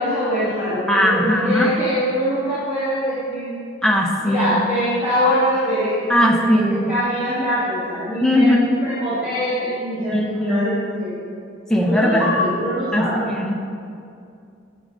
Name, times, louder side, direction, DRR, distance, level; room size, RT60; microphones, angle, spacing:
voice 1, 0.0-3.6 4.2-11.2 11.9-13.2, equal, 15° right, -14 dB, 2.4 m, -23 dB
voice 2, 0.9-1.7 3.8-4.6 6.1-6.9 8.2-8.9 10.1-10.7 11.7-12.4 12.9-13.5, equal, 5° left, -1 dB, 0.8 m, -19 dB
11.0 x 6.3 x 4.1 m, 2.4 s
head